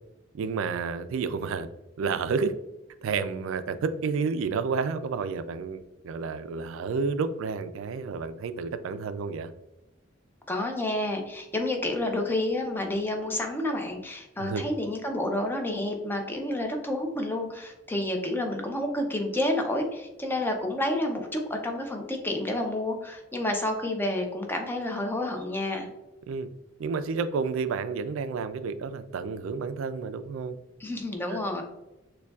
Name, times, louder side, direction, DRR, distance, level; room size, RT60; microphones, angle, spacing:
voice 1, 0.3-1.7 2.0-2.5 3.0-9.5 14.4-14.6 26.3-26.5 26.8-30.6 31.3-31.4, right 5 dB, 80° right, 12 dB, 0.3 m, -30 dB
voice 2, 10.5-25.9 30.8-31.6, left 1 dB, 10° left, 2 dB, 0.5 m, -29 dB
6.5 x 2.3 x 2.3 m, 0.97 s
head